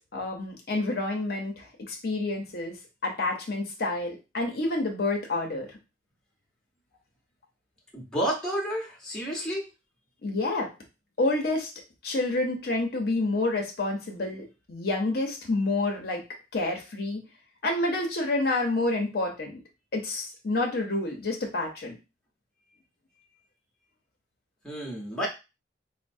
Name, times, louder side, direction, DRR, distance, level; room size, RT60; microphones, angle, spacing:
voice 1, 0.0-2.8 3.0-5.7 10.2-10.7 11.2-11.7 12.0-16.2 16.5-17.2 17.6-19.6 19.9-22.0, left 2 dB, 55° left, 1 dB, 0.7 m, -28 dB
voice 2, 7.9-9.7 24.6-25.3, equal, 5° left, -4 dB, 0.9 m, -30 dB
4.3 x 2.0 x 2.6 m, 0.28 s
head